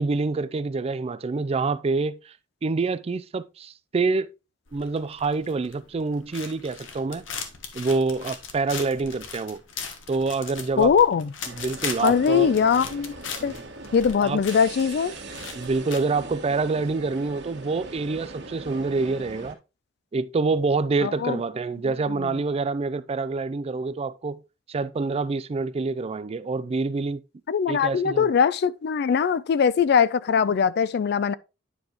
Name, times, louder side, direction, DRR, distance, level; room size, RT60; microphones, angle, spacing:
voice 1, 0.0-2.3 2.6-4.3 4.7-7.2 7.7-9.6 10.1-10.9 11.6-12.5 14.2-14.4 15.6-19.6 20.1-24.4 24.7-27.2 27.7-28.3, right 3 dB, 30° right, 0.4 m, -26 dB
sound 1, 4.7-16.0, left 6 dB, 85° left, 1.3 m, -39 dB
voice 2, 10.8-11.3 12.0-13.2 13.4-13.5 13.9-15.1 21.0-21.4 21.8-22.3 27.5-31.3, left 6 dB, 60° left, 0.4 m, -21 dB
sound 2, 11.4-19.5, right 2 dB, 65° right, 1.5 m, -40 dB
9.8 x 5.2 x 2.9 m
head